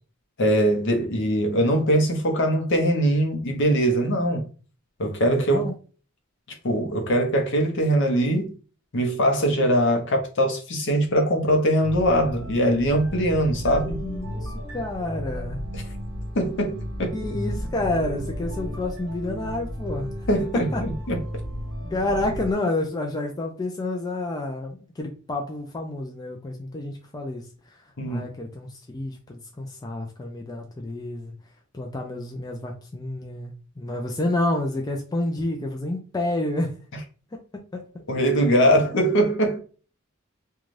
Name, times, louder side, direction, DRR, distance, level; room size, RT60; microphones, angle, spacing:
voice 1, 0.4-4.5 5.0-5.6 6.6-8.5 8.9-14.0 16.3-17.2 20.3-21.2 28.0-28.3 38.1-39.6, equal, 60° left, 0.7 m, -22 dB
voice 2, 5.3-5.7 14.0-15.6 17.1-20.1 20.7-20.8 21.9-27.4 28.1-31.3 31.7-36.8 37.7-37.8 38.7-38.8, left 2 dB, 20° left, 0.4 m, -29 dB
sound 1, 11.8-22.5, equal, 70° right, 0.8 m, -33 dB
2.5 x 2.3 x 3.1 m
head